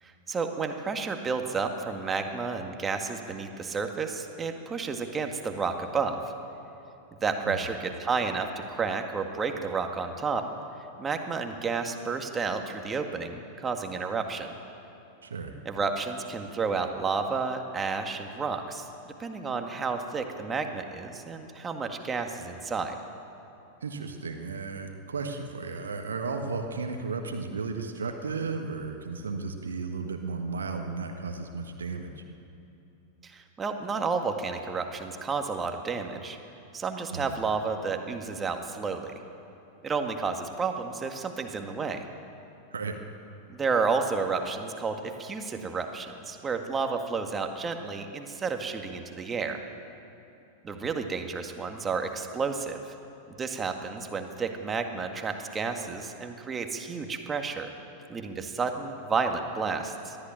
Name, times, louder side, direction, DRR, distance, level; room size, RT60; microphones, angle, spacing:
voice 1, 0.0-6.3 7.2-10.5 11.0-14.5 15.6-23.0 33.2-36.4 36.7-39.2 39.8-42.0 43.5-49.6 50.6-52.9 53.3-57.7 58.1-60.2, right 4 dB, 20° right, 5 dB, 1.9 m, -31 dB
voice 2, 15.2-15.5 23.8-32.2 37.1-37.3 42.7-43.0, right 4 dB, 70° right, 5 dB, 1.5 m, -34 dB
20.5 x 13.5 x 9.1 m, 2.9 s
figure-of-eight pair, 90°, 0 cm